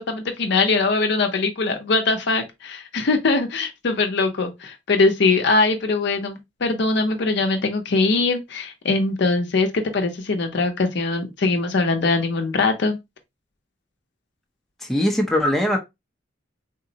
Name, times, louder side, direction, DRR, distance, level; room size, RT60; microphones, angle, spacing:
voice 1, 0.1-13.0, left 3 dB, 65° left, 0.6 m, -22 dB
voice 2, 14.9-15.8, left 1 dB, ahead, 0.5 m, -20 dB
3.6 x 2.0 x 2.6 m
head